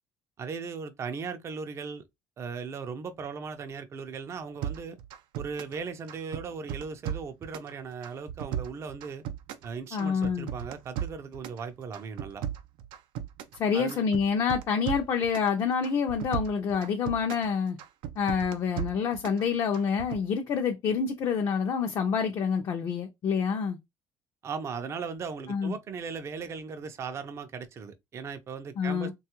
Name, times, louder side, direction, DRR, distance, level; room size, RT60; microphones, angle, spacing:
voice 1, 0.4-2.0 2.4-5.0 5.3-9.2 9.6-12.4 13.7-14.0 24.4-29.1, right 5 dB, 30° right, 0.4 m, -37 dB
sound 1, 4.6-5.8 6.1-7.7 8.0-9.7 10.0-11.6 11.9-13.6 13.9-15.5 15.8-17.5 17.8-19.4 19.7-20.2, right 10 dB, 85° right, 0.4 m, -36 dB
voice 2, 9.9-10.5 13.6-17.8 18.2-23.8 25.5-25.7 28.8-29.1, left 6 dB, 40° left, 0.4 m, -27 dB
3.2 x 2.3 x 2.8 m
cardioid pair, 150°, 9 cm